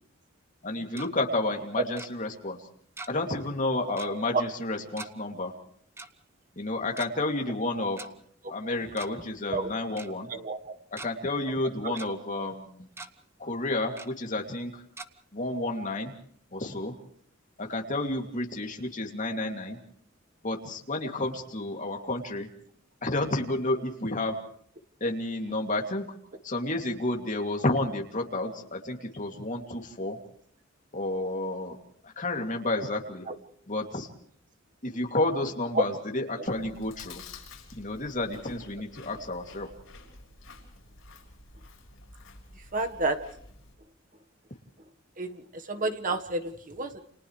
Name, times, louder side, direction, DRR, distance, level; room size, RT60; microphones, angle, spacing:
voice 1, 0.6-2.6 3.1-5.5 6.6-8.0 8.5-10.3 10.9-12.9 13.4-14.8 15.3-16.1 16.5-16.9 17.6-19.8 20.4-22.5 23.0-24.4 25.0-26.1 26.4-30.2 30.9-31.8 32.0-33.3 33.7-34.1 34.8-37.2 37.8-39.7, left 2 dB, 40° left, 2 dB, 2.8 m, -31 dB
Tick-tock, 0.7-1.1 2.0-2.1 3.0-3.3 3.6-3.7 4.0-4.2 5.0-5.1 6.0-6.1 6.8-7.1 8.0-8.1 8.8-9.2 9.5-9.6 10.0-10.1 10.6-11.1 11.6-12.1 12.5-12.6 12.9-13.1 14.0-14.1 15.0-15.1, right 2 dB, 15° right, 1.0 m, -42 dB
voice 2, 10.3-10.8 11.6-12.0 33.3-33.4 35.7-35.9 42.7-43.2 45.2-47.0, right 2 dB, 40° right, 6 dB, 1.5 m, -30 dB
Chewing mastication, 36.4-43.7, left 3 dB, 80° left, 6.7 m, -50 dB
30.0 x 29.5 x 3.3 m, 0.64 s
head